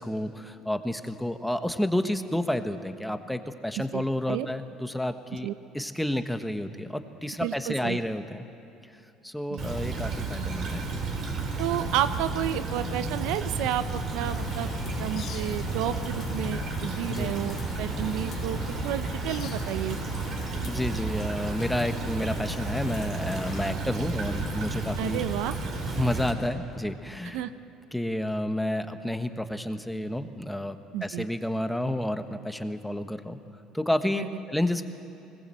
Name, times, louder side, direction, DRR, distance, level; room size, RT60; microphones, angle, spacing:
voice 1, 0.0-5.5 5.7-8.5 9.2-10.9 17.1-17.4 20.7-25.2 25.9-27.4 27.9-33.4 33.7-34.8, left 1 dB, 5° left, 8 dB, 1.3 m, -30 dB
voice 2, 3.8-4.5 5.4-5.5 7.4-8.0 9.5-9.6 11.6-14.7 15.0-20.0 23.7-23.8 25.0-25.6 27.3-27.5 30.9-31.3 34.1-34.3, right 12 dB, 75° right, 12 dB, 0.8 m, -31 dB
Stream / Trickle dribble, 9.6-26.3, right 3 dB, 55° right, 4.5 m, -32 dB
sound 1, 14.2-23.7, left 8 dB, 55° left, 1.3 m, -41 dB
20.0 x 19.5 x 7.7 m, 2.7 s
supercardioid pair, 80°, 0 cm